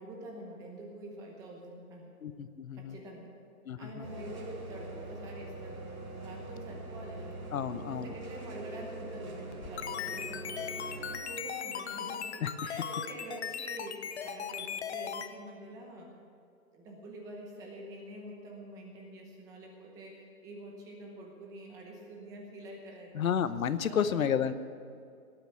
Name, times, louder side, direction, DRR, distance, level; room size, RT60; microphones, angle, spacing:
voice 1, 0.0-2.1 2.7-3.4 3.8-7.4 7.8-16.1 16.7-23.3 23.5-24.3, right 1 dB, 10° right, 0 dB, 0.9 m, -46 dB
voice 2, 2.2-3.0 3.7-4.1 7.5-8.1 12.4-12.5 23.1-24.5, left 8 dB, 70° left, 13 dB, 0.9 m, -31 dB
sound 1, 4.0-11.2, right 2 dB, 75° right, 5.3 m, -43 dB
sound 2, 9.5-15.3, left 8 dB, 50° left, 1.0 m, -38 dB
18.5 x 9.1 x 8.4 m, 2.4 s
hypercardioid pair, 165°, 44 cm